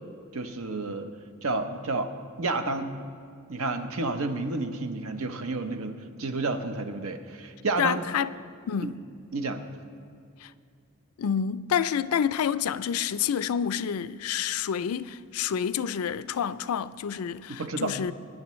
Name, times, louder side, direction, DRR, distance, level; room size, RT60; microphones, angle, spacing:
voice 1, 0.3-1.1 1.4-2.1 2.4-2.9 3.5-8.0 8.8-8.9 9.3-9.7 17.5-17.9, right 3 dB, 75° right, 0.8 m, -30 dB
voice 2, 7.8-8.3 8.7-9.0 10.4-10.5 11.2-18.1, left 8 dB, 80° left, 0.4 m, -28 dB
20.5 x 10.5 x 3.1 m
head